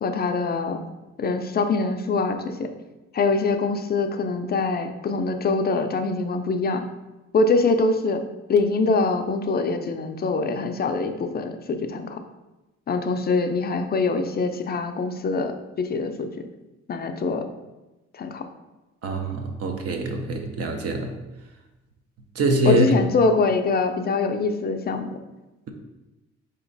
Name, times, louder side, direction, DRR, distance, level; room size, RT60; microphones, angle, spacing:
voice 1, 0.0-0.8 1.2-2.7 3.1-6.8 7.3-8.2 8.5-12.2 12.9-16.5 16.9-17.4 18.1-18.4 22.7-25.2, left 3 dB, 35° left, 6 dB, 0.4 m, -24 dB
voice 2, 19.0-21.2 22.3-22.8, right 2 dB, 55° right, 4 dB, 0.7 m, -24 dB
4.3 x 3.0 x 3.9 m, 1.0 s
cardioid pair, 120°, 29 cm